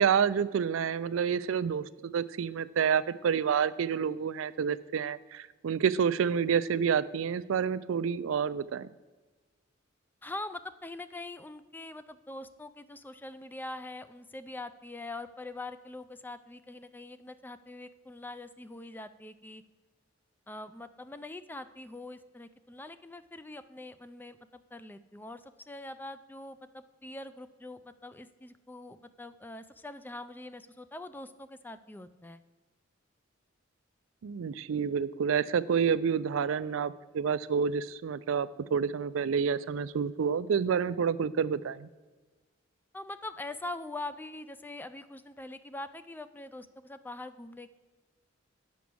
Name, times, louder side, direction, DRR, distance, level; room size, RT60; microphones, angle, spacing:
voice 1, 0.0-8.9 34.2-41.9, right 7 dB, 80° right, 16 dB, 0.4 m, -28 dB
voice 2, 10.2-19.6 20.5-24.4 24.7-32.4 42.9-47.7, left 2 dB, 10° left, 12 dB, 0.3 m, -43 dB
8.2 x 6.1 x 6.1 m, 1.2 s
head